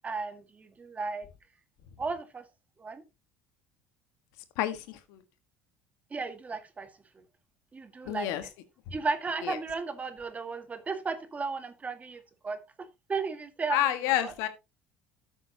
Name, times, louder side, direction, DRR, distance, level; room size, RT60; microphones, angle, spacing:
voice 1, 0.0-1.3 2.0-2.4 2.8-3.0 6.1-6.9 7.7-8.3 8.9-14.3, right 4 dB, 25° right, 1.9 m, -35 dB
voice 2, 4.6-5.2 8.1-8.4 9.4-9.6 13.7-14.5, left 13 dB, 70° left, 1.6 m, -29 dB
13.0 x 7.2 x 2.9 m
hypercardioid pair, 75°, 5 cm